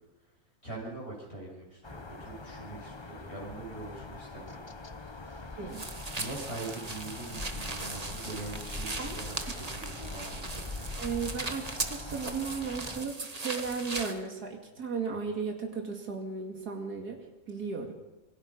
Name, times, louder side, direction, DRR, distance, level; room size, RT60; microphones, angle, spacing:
voice 1, 0.6-4.6 5.1-5.6 6.2-11.0, right 2 dB, 40° left, -3 dB, 6.9 m, -43 dB
sound 1, 1.8-13.0, left 3 dB, 20° left, 0.9 m, -43 dB
voice 2, 5.6-5.9 9.0-9.2 9.5-9.6 10.0-10.1 11.0-17.2 17.5-17.9, right 5 dB, 90° right, 2 dB, 3.0 m, -35 dB
sound 2, 5.7-14.2, right 3 dB, 25° right, 1.5 m, -38 dB
27.0 x 24.0 x 5.5 m, 1.1 s
omnidirectional pair, 1.6 m